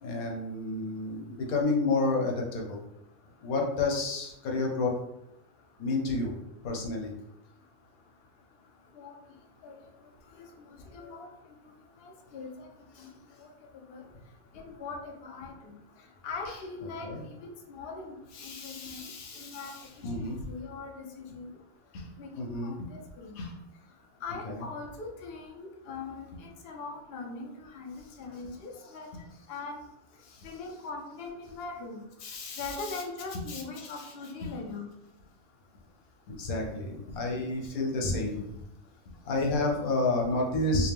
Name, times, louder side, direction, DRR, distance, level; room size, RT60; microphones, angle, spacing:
voice 1, 0.0-2.8 3.4-4.9 5.8-6.3 6.6-7.1 13.0-13.1 17.0-17.2 18.3-20.4 22.4-22.7 23.3-23.4 24.4-24.6 30.2-30.5 32.2-33.0 33.5-33.6 34.0-34.1 36.4-38.5 39.2-40.9, left 2 dB, 90° left, 0 dB, 1.3 m, -30 dB
voice 2, 10.4-11.3 12.0-12.7 13.0-13.1 13.4-13.5 13.9-14.0 14.5-15.5 16.2-18.2 18.4-19.0 19.3-19.7 20.0-20.1 20.5-21.5 22.2-22.3 22.6-23.4 24.2-29.1 29.5-29.8 30.4-32.0 32.6-34.9, left 3 dB, 55° left, 1 dB, 0.8 m, -41 dB
4.9 x 2.1 x 3.4 m, 0.84 s
omnidirectional pair, 1.5 m